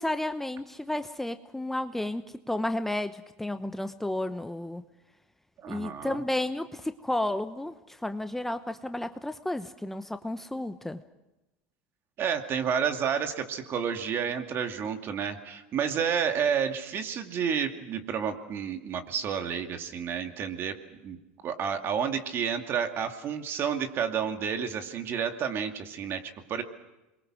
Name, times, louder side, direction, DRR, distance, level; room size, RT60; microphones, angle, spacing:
voice 1, 0.0-4.8 5.7-11.0, left 1 dB, 5° left, 9 dB, 0.9 m, -32 dB
voice 2, 5.6-6.2 12.2-20.8 21.0-21.2 21.4-26.6, right 7 dB, 45° right, 6 dB, 2.5 m, -30 dB
27.5 x 22.5 x 6.3 m, 1.0 s
hypercardioid pair, 95°, 6 cm